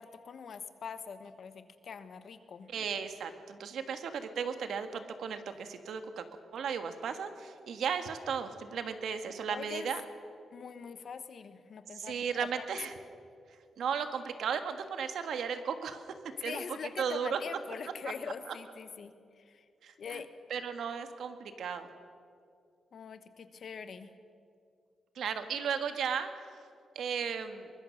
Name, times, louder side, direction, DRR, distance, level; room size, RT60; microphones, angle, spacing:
voice 1, 0.0-2.7 9.5-9.9 10.5-12.7 16.4-19.6 20.0-20.3 22.9-24.1, left 6 dB, 50° left, 10 dB, 1.1 m, -43 dB
voice 2, 2.7-6.2 6.5-10.0 11.9-12.9 13.8-16.0 16.4-16.6 17.0-17.4 18.5-18.6 19.8-20.2 20.5-21.9 25.1-26.3 26.9-27.7, right 7 dB, 70° right, 8 dB, 1.5 m, -35 dB
23.0 x 20.5 x 6.4 m, 2.4 s
wide cardioid pair, 170°, 0 cm